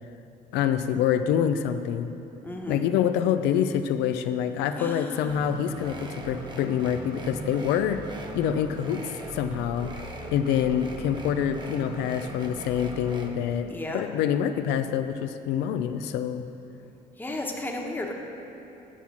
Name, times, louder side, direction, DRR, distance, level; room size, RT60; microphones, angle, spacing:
voice 1, 0.5-2.1 2.7-8.0 8.3-9.9 10.3-16.4, left 9 dB, 85° left, 8 dB, 0.4 m, -26 dB
voice 2, 2.4-2.8 4.8-5.4 13.7-14.1 17.2-18.1, left 2 dB, 10° left, 0 dB, 1.1 m, -33 dB
sound 1, 5.3-13.3, right 2 dB, 25° right, 0.9 m, -39 dB
8.2 x 5.8 x 7.1 m, 2.9 s
cardioid pair, 110°, 17 cm